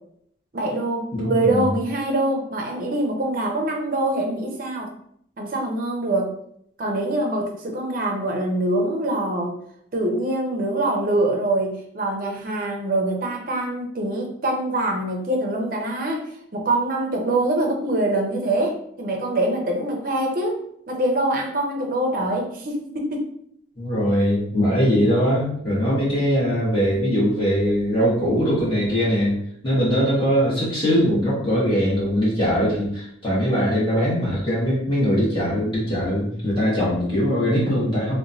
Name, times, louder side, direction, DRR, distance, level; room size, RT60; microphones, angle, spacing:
voice 1, 0.5-4.9 5.4-6.4 6.8-9.5 9.9-16.3 16.5-23.3, right 1 dB, 45° right, 1 dB, 0.5 m, -24 dB
voice 2, 1.1-1.7 23.8-29.4 29.6-38.2, equal, 25° left, -9 dB, 1.3 m, -21 dB
2.9 x 2.2 x 2.6 m, 0.69 s
head